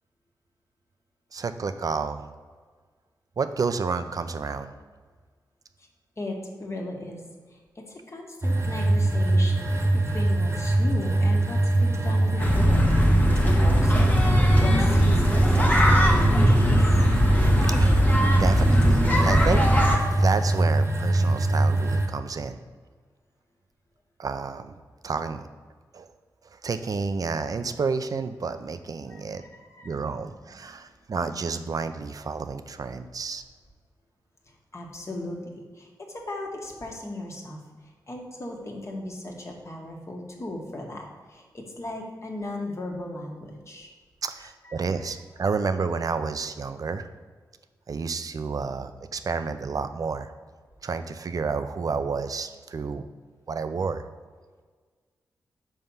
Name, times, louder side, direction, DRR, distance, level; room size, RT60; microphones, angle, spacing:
voice 1, 1.3-2.3 3.4-4.7 17.7-18.0 18.4-19.6 20.1-22.6 24.2-24.8 25.0-25.5 25.9-26.1 26.5-29.4 29.8-33.4 44.2-47.1 47.9-50.3 50.8-53.1 53.5-54.0, right 5 dB, 55° right, 10 dB, 0.5 m, -30 dB
voice 2, 6.2-7.2 7.5-16.6 29.1-29.9 34.7-37.6 38.1-43.9 44.6-45.1, left 1 dB, 40° left, 0 dB, 1.4 m, -37 dB
sound 1, 8.4-22.1, right 2 dB, 35° right, 1.1 m, -22 dB
sound 2, 12.4-20.0, equal, 20° left, 1.3 m, -21 dB
5.5 x 4.6 x 5.5 m, 1.5 s
cardioid pair, 60°, 7 cm